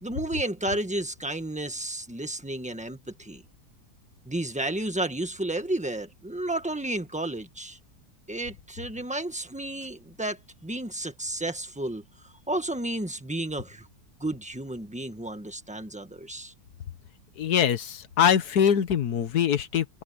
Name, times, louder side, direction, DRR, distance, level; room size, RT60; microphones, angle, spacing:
voice 1, 0.0-3.4 4.2-7.8 8.3-12.0 12.5-13.8 14.2-16.5, right 1 dB, 5° right, 1.3 m, -32 dB
voice 2, 17.4-20.0, left 8 dB, 65° left, 1.6 m, -23 dB
open air
omnidirectional pair, 1.8 m